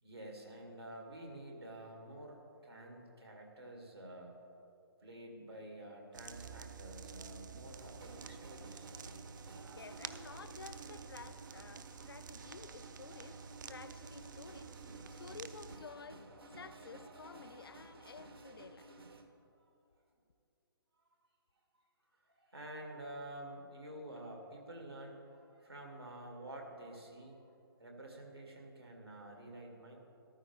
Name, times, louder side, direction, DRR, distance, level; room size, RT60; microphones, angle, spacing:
voice 1, 0.0-4.3 5.0-8.9 22.2-27.4 27.8-30.0, right 1 dB, 90° right, 1 dB, 2.4 m, -49 dB
sound 1, 6.1-15.8, right 6 dB, 50° right, 0.6 m, -50 dB
sound 2, 7.6-19.2, right 2 dB, 70° right, 1.3 m, -55 dB
voice 2, 9.7-13.4 13.7-16.2 16.5-18.9, left 5 dB, 65° left, 13 dB, 0.5 m, -52 dB
14.0 x 12.5 x 3.5 m, 2.7 s
figure-of-eight pair, 135°, 13 cm